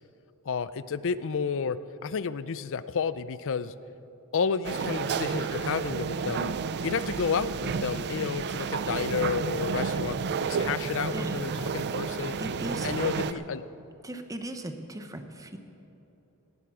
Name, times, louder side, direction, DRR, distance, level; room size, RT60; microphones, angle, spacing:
voice 1, 0.5-3.7 4.3-6.5 6.8-12.4 12.8-13.6, left 6 dB, 60° left, 15 dB, 0.5 m, -31 dB
sound 1, 4.6-13.3, right 5 dB, 50° right, 0.4 m, -31 dB
voice 2, 12.4-13.0 13.3-13.5 14.0-15.6, right 1 dB, 15° right, 7 dB, 0.9 m, -38 dB
18.0 x 13.0 x 4.9 m, 3.0 s
head